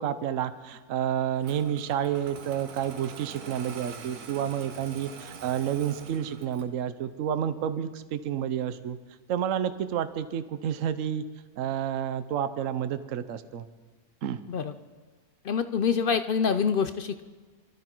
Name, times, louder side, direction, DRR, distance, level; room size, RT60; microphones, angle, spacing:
voice 1, 0.0-9.0 9.3-11.2 11.6-13.6 14.2-14.4, right 9 dB, 65° right, 12 dB, 1.1 m, -30 dB
Engine starting, 1.4-6.8, right 5 dB, 85° right, 1.6 m, -45 dB
voice 2, 15.4-17.2, left 6 dB, 65° left, 10 dB, 0.5 m, -26 dB
24.5 x 13.0 x 4.5 m, 1.4 s
omnidirectional pair, 1.6 m